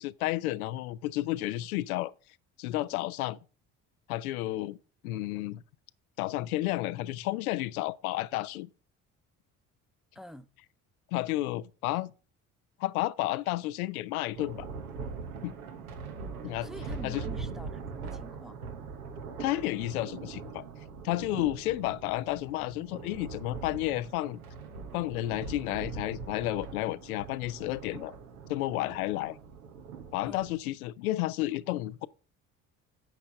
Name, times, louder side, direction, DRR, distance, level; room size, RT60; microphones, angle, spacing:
voice 1, 0.0-2.1 2.6-3.4 4.1-4.8 5.0-5.6 6.2-8.7 11.1-12.1 12.8-14.7 15.4-15.5 16.4-16.7 17.0-17.2 19.4-20.7 21.0-24.4 24.9-28.1 28.5-29.4 30.1-32.1, left 16 dB, 85° left, 0.5 m, -31 dB
voice 2, 10.1-10.5 16.5-18.6 29.3-29.4 30.3-30.5, equal, ahead, 0.7 m, -47 dB
Thunder, 14.3-30.6, right 5 dB, 90° right, 1.1 m, -42 dB
9.1 x 5.1 x 5.5 m
hypercardioid pair, 55°, 43 cm